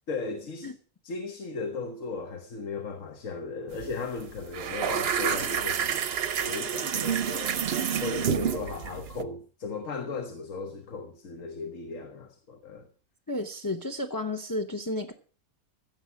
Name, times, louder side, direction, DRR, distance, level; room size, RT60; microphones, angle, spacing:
voice 1, 0.1-0.7 1.0-6.0 6.4-7.6 8.0-12.9, left 4 dB, 65° left, 1.6 m, -36 dB
sound 1, 3.7-3.9 4.2-9.2, right 8 dB, 50° right, 0.9 m, -29 dB
voice 2, 8.3-8.6 13.3-15.1, left 2 dB, 15° left, 0.8 m, -32 dB
15.5 x 7.3 x 6.0 m
omnidirectional pair, 1.5 m